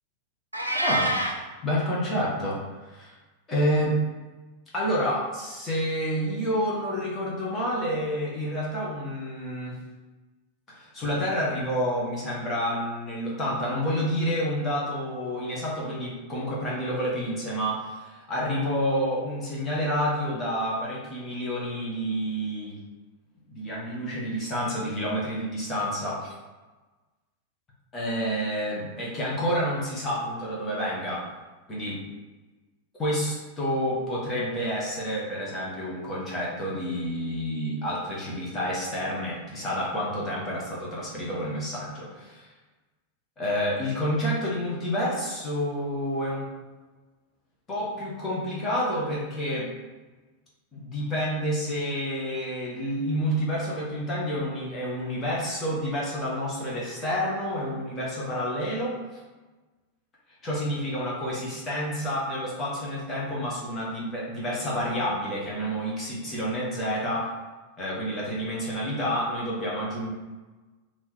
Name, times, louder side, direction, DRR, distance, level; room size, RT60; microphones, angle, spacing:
Meow, 0.5-1.4, right 1 dB, 85° right, 0.6 m, -26 dB
voice 1, 0.7-1.1 1.6-3.1 3.5-4.0 4.7-9.8 10.7-22.8 23.5-26.3 27.9-31.2 31.7-32.0 33.0-42.5 43.4-46.5 47.7-49.7 50.7-59.2 60.4-67.3 67.8-70.1, equal, 20° left, -6 dB, 1.3 m, -29 dB
3.8 x 3.0 x 4.4 m, 1.2 s
figure-of-eight pair, 90°, 0 cm